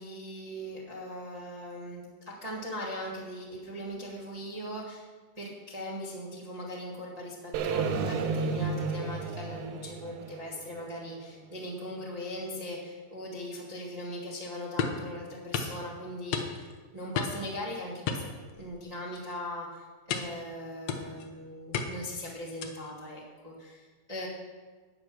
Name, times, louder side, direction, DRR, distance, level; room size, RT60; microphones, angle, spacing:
voice 1, 0.0-2.0 2.4-5.1 5.3-24.3, left 1 dB, 30° right, -6 dB, 0.6 m, -40 dB
sound 1, 7.5-11.6, right 4 dB, 80° right, 1.8 m, -32 dB
sound 2, 14.8-15.1 15.5-15.8 16.3-16.8 17.1-17.5 18.1-18.8 19.1-19.4 20.1-20.4 20.9-21.3 21.7-22.1 22.6-22.9, left 6 dB, 80° left, 1.5 m, -33 dB
10.5 x 8.2 x 6.0 m, 1.4 s
omnidirectional pair, 4.2 m